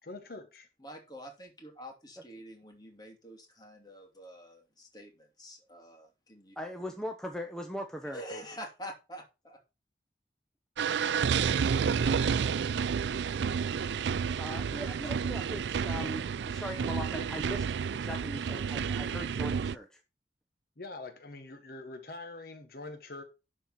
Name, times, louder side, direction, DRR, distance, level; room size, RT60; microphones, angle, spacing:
voice 1, 0.0-0.7 20.8-23.2, left 2 dB, 55° left, 1.2 m, -44 dB
voice 2, 0.8-6.6 8.1-9.6, equal, 20° left, 2.7 m, -47 dB
voice 3, 6.6-8.4 14.4-20.0, equal, 5° left, 0.9 m, -40 dB
sound 1, 10.8-19.8, right 6 dB, 70° right, 0.4 m, -30 dB
11.5 x 4.5 x 5.9 m
head